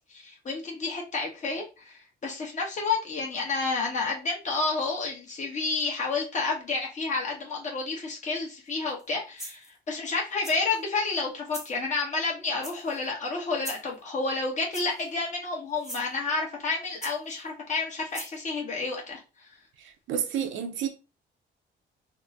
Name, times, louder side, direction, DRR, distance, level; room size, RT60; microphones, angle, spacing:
voice 1, 0.1-19.5, left 3 dB, 40° left, 1.3 m, -30 dB
sound 1, 8.9-9.1 9.4-9.8 10.4-10.8 11.5-11.7 12.6-13.0 13.6-13.9 14.7-15.1 15.8-16.1 17.0-17.5 18.1-18.4, right 1 dB, ahead, 0.9 m, -40 dB
voice 2, 20.1-20.9, right 8 dB, 75° right, 0.6 m, -29 dB
3.5 x 2.1 x 2.7 m
cardioid pair, 90°, 20 cm